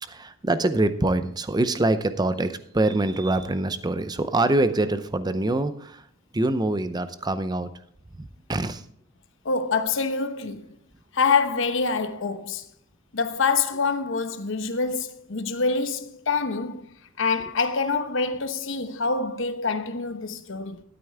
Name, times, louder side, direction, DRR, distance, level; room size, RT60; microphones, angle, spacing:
voice 1, 0.0-6.1 6.3-7.7 8.2-8.8, right 2 dB, 20° right, 0.6 m, -24 dB
voice 2, 9.4-10.7 11.1-12.7 13.1-20.8, left 4 dB, 65° left, 1.0 m, -26 dB
12.5 x 9.0 x 3.5 m
head